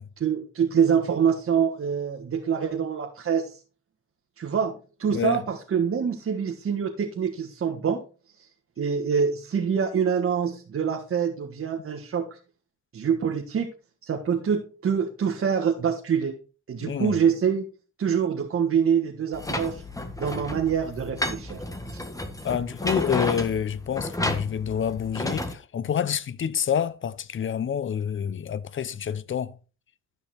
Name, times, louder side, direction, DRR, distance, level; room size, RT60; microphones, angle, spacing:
voice 1, 0.2-3.6 4.4-4.7 5.0-8.0 8.4-8.5 8.8-12.4 12.9-13.7 14.0-16.4 16.7-17.7 18.0-19.8 20.2-21.6 21.9-22.0, right 7 dB, 45° right, 1.6 m, -25 dB
voice 2, 5.1-5.4 16.8-17.2 22.4-29.6, left 8 dB, 40° left, 0.8 m, -28 dB
sound 1, 19.3-25.5, left 1 dB, 10° left, 1.5 m, -32 dB
12.5 x 5.8 x 4.3 m
cardioid pair, 90°, 30 cm